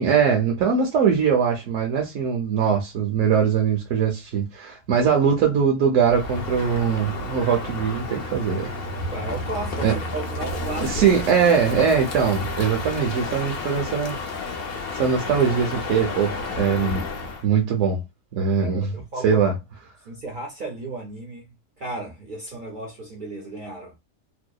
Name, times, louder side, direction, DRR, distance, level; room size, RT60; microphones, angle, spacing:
voice 1, 0.0-8.7 9.8-9.9 10.8-14.2 14.9-17.1 17.4-18.0 18.3-18.9 19.2-19.5, right 7 dB, 75° right, 0.9 m, -21 dB
Crow, 6.0-17.5, left 3 dB, 60° left, 0.7 m, -31 dB
voice 2, 9.1-11.1 18.6-19.4 20.1-21.5 21.8-24.0, right 2 dB, 55° right, 0.6 m, -34 dB
2.7 x 2.0 x 2.2 m
omnidirectional pair, 1.3 m